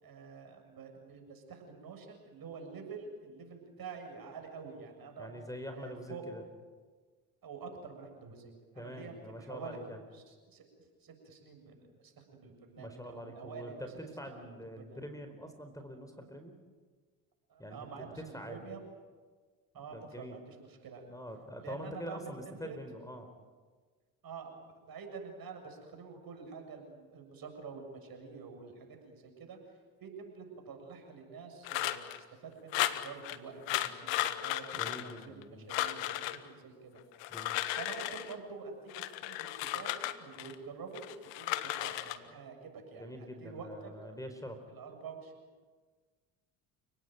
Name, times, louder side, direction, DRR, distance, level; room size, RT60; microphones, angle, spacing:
voice 1, 0.0-5.3 5.7-6.2 7.4-9.8 10.1-14.0 14.8-15.0 17.5-18.8 19.7-21.0 21.6-22.8 24.2-29.7 30.0-37.0 37.8-38.9 39.2-41.1 41.4-43.9 44.7-45.3, right 5 dB, 50° right, 4 dB, 7.2 m, -47 dB
voice 2, 5.2-6.4 8.7-10.0 12.8-16.6 17.6-18.8 19.9-20.4 21.1-23.3 34.8-35.7 37.3-37.6 43.0-44.6, equal, 10° left, 7 dB, 4.4 m, -45 dB
sound 1, 31.6-32.2 32.7-33.4 33.7-35.4 35.7-36.4 37.1-38.3 38.9-40.5 40.9-42.2, left 15 dB, 75° left, 1.6 m, -35 dB
29.5 x 18.5 x 9.3 m, 1.5 s
hypercardioid pair, 65°, 44 cm